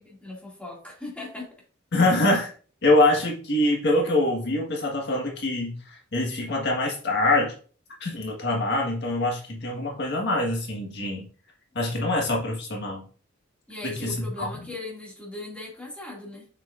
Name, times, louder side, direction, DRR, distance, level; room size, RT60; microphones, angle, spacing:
voice 1, 0.2-1.5 2.1-2.2 13.7-16.5, left 2 dB, 5° left, -3 dB, 2.2 m, -38 dB
voice 2, 1.9-2.5 2.8-7.5 8.0-11.3 11.7-13.1 13.8-14.5, left 2 dB, 60° left, -1 dB, 1.5 m, -24 dB
7.0 x 6.0 x 2.5 m, 0.41 s
head